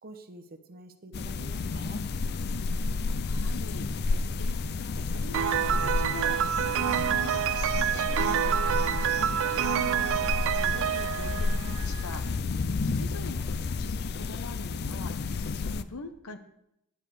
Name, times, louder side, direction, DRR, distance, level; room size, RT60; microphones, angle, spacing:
voice 1, 0.0-2.0 12.6-13.1, right 2 dB, 45° right, 8 dB, 0.9 m, -48 dB
sound 1, 1.1-15.8, left 3 dB, 50° left, 0.4 m, -31 dB
voice 2, 2.9-12.2 12.8-16.4, left 3 dB, 80° left, 9 dB, 1.0 m, -44 dB
Piano, 5.3-12.2, right 10 dB, 60° right, 0.3 m, -28 dB
10.0 x 9.0 x 5.0 m, 0.80 s
head